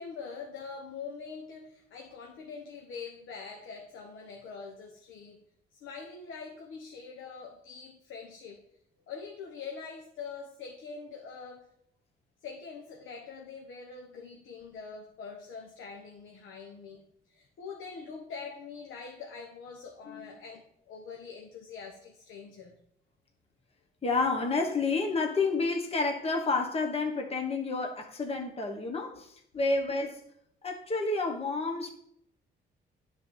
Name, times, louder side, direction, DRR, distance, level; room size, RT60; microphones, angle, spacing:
voice 1, 0.0-5.4 5.7-8.6 9.1-11.7 12.4-22.8, left 5 dB, 80° left, 1.3 m, -44 dB
voice 2, 24.0-30.2 30.6-31.9, left 3 dB, 30° left, 1.2 m, -30 dB
9.8 x 4.1 x 7.1 m
cardioid pair, 90°, 20 cm